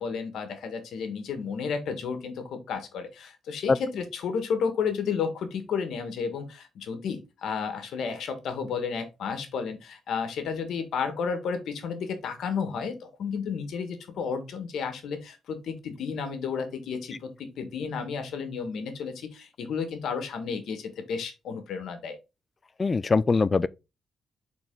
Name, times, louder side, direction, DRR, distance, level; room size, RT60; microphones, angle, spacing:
voice 1, 0.0-22.2, left 6 dB, 80° left, 1.4 m, -32 dB
voice 2, 22.8-23.7, left 4 dB, 30° left, 0.3 m, -22 dB
6.7 x 4.1 x 3.8 m
cardioid pair, 125°, 0 cm